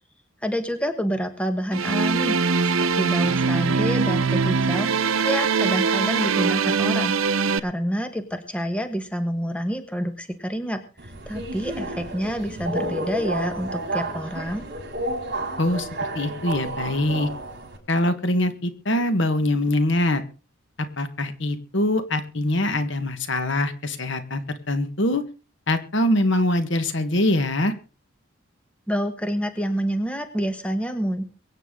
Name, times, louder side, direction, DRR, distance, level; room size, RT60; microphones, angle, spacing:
voice 1, 0.4-2.4 2.7-7.1 7.6-14.7 28.9-31.3, equal, 5° left, 8 dB, 1.3 m, -28 dB
sound 1, 1.7-7.6, right 5 dB, 80° right, 0.8 m, -22 dB
Subway metro underground, 11.0-17.8, right 1 dB, 55° right, 4.9 m, -31 dB
voice 2, 15.6-15.9 16.1-17.3 17.9-20.2 21.0-25.2 25.7-27.7, left 1 dB, 60° left, 9 dB, 1.5 m, -23 dB
23.0 x 9.1 x 3.8 m, 0.35 s
head